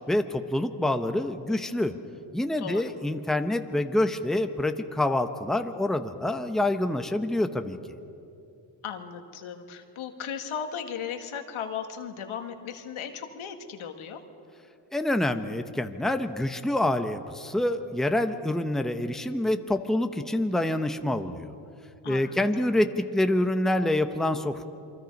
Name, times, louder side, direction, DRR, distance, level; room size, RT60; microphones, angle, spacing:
voice 1, 0.1-2.0 2.3-7.8 14.9-21.5 22.1-24.6, left 1 dB, ahead, 7 dB, 1.0 m, -26 dB
voice 2, 2.6-2.9 8.8-14.2 22.0-22.7, left 7 dB, 80° left, 6 dB, 1.9 m, -36 dB
28.0 x 23.5 x 5.4 m, 2.7 s
cardioid pair, 90°, 48 cm